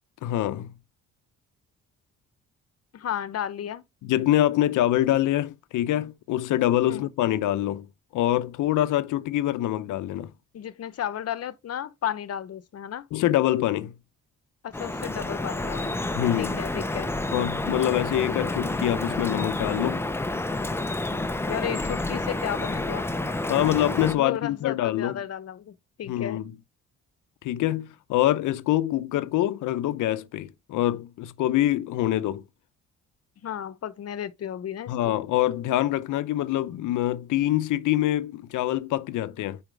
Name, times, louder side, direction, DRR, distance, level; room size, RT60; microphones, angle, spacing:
voice 1, 0.2-0.7 4.0-7.9 8.1-10.3 13.1-14.0 16.1-16.6 17.3-20.0 23.5-25.2 26.1-26.5 27.4-32.4 34.9-39.6, left 13 dB, 80° left, 0.7 m, -25 dB
voice 2, 2.9-3.8 6.9-7.1 10.5-13.1 14.6-16.0 16.4-17.1 21.5-23.1 24.2-26.4 33.4-35.2, left 10 dB, 55° left, 0.9 m, -33 dB
Drip, 14.7-24.1, left 2 dB, 10° left, 0.7 m, -29 dB
9.2 x 4.3 x 3.4 m
cardioid pair, 90°, 30 cm